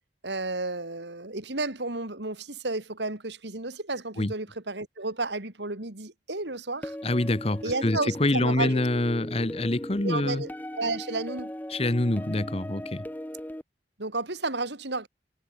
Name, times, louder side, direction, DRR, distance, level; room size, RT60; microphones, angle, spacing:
voice 1, 0.2-7.0 7.6-8.8 10.0-10.5 10.8-11.5 14.0-15.1, right 2 dB, 70° right, 3.0 m, -32 dB
sound 1, 6.8-13.6, equal, 10° left, 1.1 m, -38 dB
voice 2, 7.0-10.4 11.7-13.0, left 1 dB, 35° left, 1.2 m, -26 dB
head